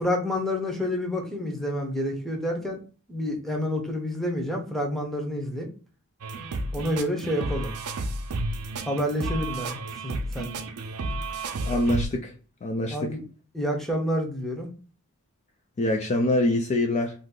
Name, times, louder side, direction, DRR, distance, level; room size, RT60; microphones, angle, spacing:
voice 1, 0.0-2.8 3.1-5.7 6.7-7.7 8.9-9.8 10.0-10.6 12.9-13.2 13.5-14.7, left 1 dB, ahead, 0 dB, 0.7 m, -28 dB
sound 1, 6.2-12.1, right 2 dB, 85° right, 0.5 m, -32 dB
voice 2, 11.6-12.3 12.6-13.1 15.8-17.1, left 1 dB, 30° left, 2 dB, 0.3 m, -24 dB
2.6 x 2.4 x 3.6 m, 0.39 s
head